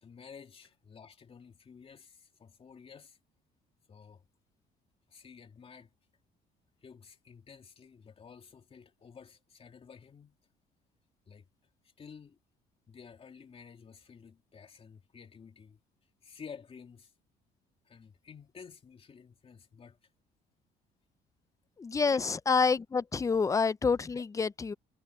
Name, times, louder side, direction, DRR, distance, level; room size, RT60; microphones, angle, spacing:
voice 1, 0.0-3.2 3.9-4.2 5.1-5.9 6.8-10.4 11.3-11.5 12.0-12.4 12.9-15.8 16.2-17.1 17.8-20.0 22.0-22.2 24.1-24.2, left 6 dB, 35° left, 3.1 m, -52 dB
voice 2, 21.8-24.7, left 5 dB, 20° left, 0.5 m, -28 dB
cardioid pair, 110°, 17 cm